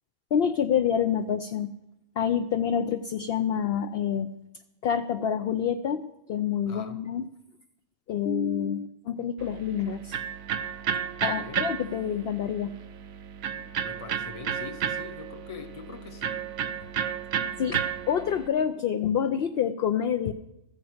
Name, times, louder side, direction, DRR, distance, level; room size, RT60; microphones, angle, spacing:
voice 1, 0.3-1.7 2.2-4.3 4.8-6.0 6.3-7.2 8.1-10.2 11.2-12.7 17.6-20.3, left 8 dB, 60° left, 7 dB, 0.8 m, -27 dB
voice 2, 6.7-7.0 11.2-11.6 13.5-16.4, left 5 dB, 30° left, 8 dB, 1.0 m, -43 dB
Electric guitar, 9.4-18.5, right 9 dB, 75° right, 1.0 m, -33 dB
14.0 x 9.5 x 7.9 m, 0.87 s
omnidirectional pair, 1.3 m